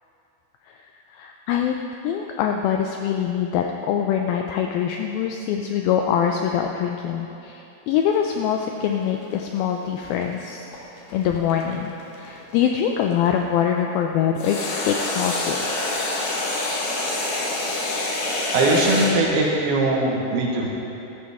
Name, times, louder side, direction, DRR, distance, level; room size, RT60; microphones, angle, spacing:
voice 1, 1.1-1.8 2.0-10.7 11.1-15.8, left 8 dB, 85° left, 3 dB, 2.1 m, -24 dB
sound 1, 8.1-13.3 14.4-19.1, left 2 dB, 60° left, 3.1 m, -27 dB
voice 2, 18.5-20.7, right 2 dB, 70° right, -2 dB, 3.2 m, -20 dB
14.0 x 13.0 x 3.6 m, 2.9 s
omnidirectional pair, 4.8 m